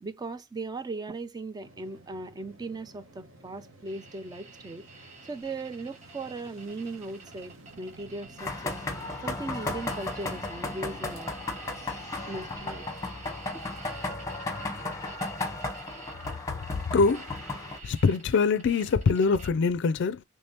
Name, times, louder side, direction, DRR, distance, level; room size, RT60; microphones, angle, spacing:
voice 1, 0.0-8.8 9.2-11.4 12.3-12.9, right 3 dB, 20° right, 0.3 m, -38 dB
Fixed-wing aircraft airplane, 1.6-16.8, right 2 dB, 65° right, 1.1 m, -54 dB
sound 1, 3.8-19.5, right 3 dB, 35° right, 1.1 m, -49 dB
sound 2, 8.4-17.8, left 2 dB, 15° left, 1.0 m, -35 dB
voice 2, 16.9-17.3 17.8-20.2, left 4 dB, 60° left, 0.4 m, -23 dB
3.4 x 3.2 x 2.7 m
head